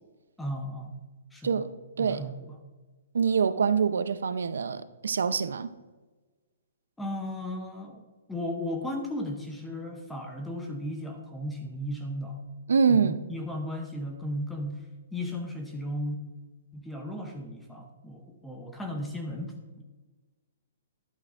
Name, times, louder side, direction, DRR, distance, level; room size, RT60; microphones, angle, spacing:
voice 1, 0.4-1.0 1.3-1.6 2.0-2.6 7.0-12.4 12.9-16.2 16.7-19.8, left 1 dB, 5° left, 0.6 m, -35 dB
voice 2, 3.1-5.7 12.7-13.2, right 6 dB, 90° right, 0.5 m, -25 dB
11.5 x 8.6 x 2.5 m
hypercardioid pair, 175°, 0 cm